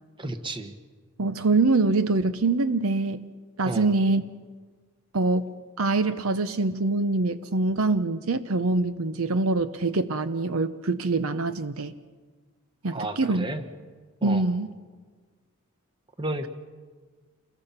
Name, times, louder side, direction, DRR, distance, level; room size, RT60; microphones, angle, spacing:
voice 1, 0.2-0.7 3.6-3.9 12.9-13.6 14.2-14.5 16.2-16.5, right 2 dB, 20° right, 7 dB, 1.4 m, -32 dB
voice 2, 1.2-3.2 3.6-4.2 5.1-11.9 12.8-13.5 14.2-14.7, right 3 dB, 70° right, 12 dB, 0.8 m, -24 dB
28.0 x 21.5 x 5.9 m, 1.5 s
head